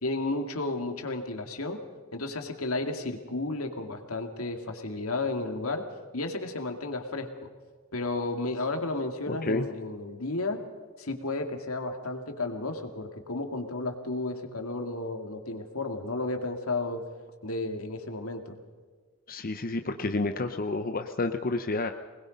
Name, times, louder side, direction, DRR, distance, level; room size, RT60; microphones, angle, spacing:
voice 1, 0.0-1.8 2.1-5.8 6.1-7.5 7.9-10.6 11.0-17.0 17.4-18.6, left 2 dB, 75° left, 5 dB, 2.3 m, -33 dB
voice 2, 9.3-9.6 19.3-21.9, left 2 dB, 40° left, 6 dB, 0.8 m, -30 dB
24.5 x 20.5 x 5.3 m, 1.5 s
head